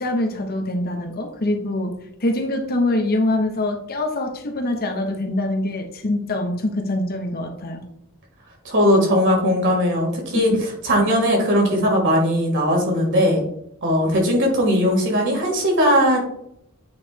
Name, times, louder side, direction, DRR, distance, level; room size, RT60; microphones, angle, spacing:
voice 1, 0.0-7.8 10.3-10.6, left 1 dB, 45° left, 4 dB, 0.9 m, -24 dB
voice 2, 8.6-10.5 10.8-13.4 13.8-16.2, equal, 60° right, 0 dB, 2.4 m, -18 dB
8.6 x 3.2 x 4.5 m, 0.75 s
head